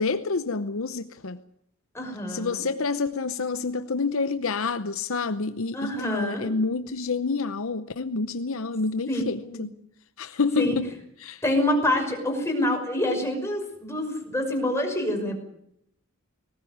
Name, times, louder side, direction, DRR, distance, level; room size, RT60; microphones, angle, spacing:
voice 1, 0.0-1.4 2.3-9.7 10.2-10.9 11.2-11.4, left 4 dB, 65° left, 0.8 m, -28 dB
voice 2, 1.9-2.6 5.7-6.5 9.1-9.7 10.6-10.7 11.4-15.4, left 1 dB, 10° left, 5.7 m, -27 dB
19.0 x 19.0 x 9.4 m
head